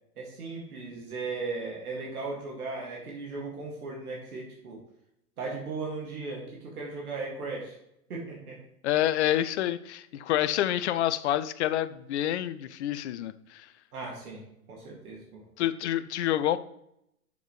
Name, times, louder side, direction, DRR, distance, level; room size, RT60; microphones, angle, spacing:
voice 1, 0.2-4.8 5.4-7.8 8.1-8.6 13.9-15.4, right 3 dB, 70° right, -2 dB, 2.2 m, -37 dB
voice 2, 8.8-13.7 15.6-16.6, left 12 dB, 50° left, 14 dB, 0.5 m, -28 dB
7.1 x 6.6 x 3.1 m, 0.78 s
figure-of-eight pair, 110°, 46 cm